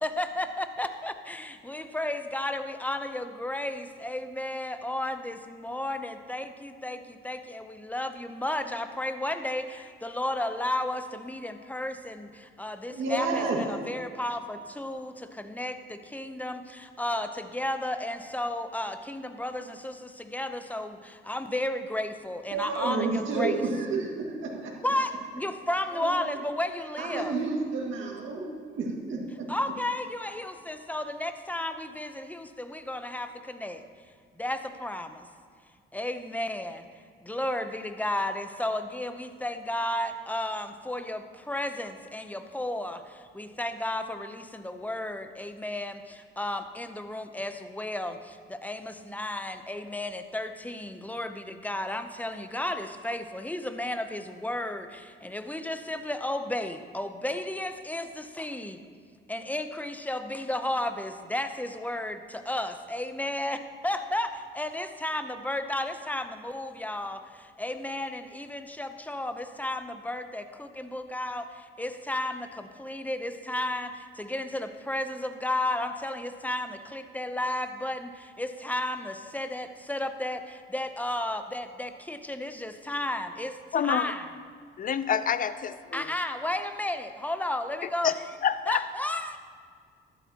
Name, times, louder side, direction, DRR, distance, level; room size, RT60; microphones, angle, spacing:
voice 1, 0.0-23.6 24.8-27.4 29.5-33.8 34.4-35.3 35.9-36.8 37.2-58.8 59.3-83.6 83.8-84.3 85.9-88.2 88.7-89.4, left 1 dB, 10° left, 8 dB, 0.7 m, -33 dB
voice 2, 12.9-13.7 22.5-24.8 25.9-26.4 27.0-29.5, right 3 dB, 75° right, -1 dB, 2.1 m, -30 dB
voice 3, 83.7-84.1 84.8-86.1 88.0-88.1 88.4-88.8, left 8 dB, 45° left, 14 dB, 0.5 m, -27 dB
13.5 x 12.0 x 2.9 m, 2.1 s
cardioid pair, 90°, 20 cm